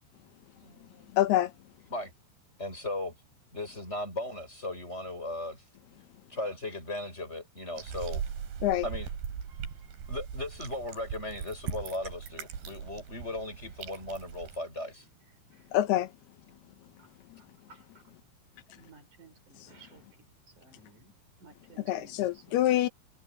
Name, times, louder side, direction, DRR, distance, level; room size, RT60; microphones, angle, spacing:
voice 1, 0.6-1.1 1.9-2.1 2.6-3.1 3.5-5.6 6.3-8.2 8.8-9.1 10.1-15.0, left 1 dB, 15° left, 7.3 m, -37 dB
voice 2, 1.1-1.5 8.6-8.8 15.7-16.1 21.9-22.9, left 13 dB, 85° left, 3.0 m, -25 dB
sound 1, 7.8-14.6, right 7 dB, 80° right, 5.1 m, -39 dB
voice 3, 17.4-18.0 18.7-20.0 20.6-22.7, right 4 dB, 50° right, 7.2 m, -56 dB
omnidirectional pair, 4.5 m